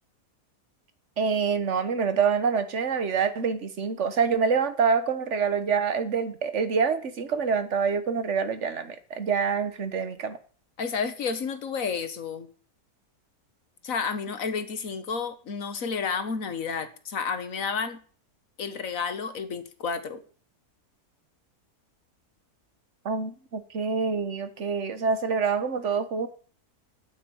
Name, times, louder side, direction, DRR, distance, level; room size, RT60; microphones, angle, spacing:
voice 1, 1.2-10.4 23.0-26.3, right 5 dB, 50° right, 1.5 m, -26 dB
voice 2, 10.8-12.5 13.8-18.0 18.6-20.2, left 5 dB, 60° left, 1.7 m, -31 dB
9.3 x 7.4 x 8.6 m
omnidirectional pair, 1.7 m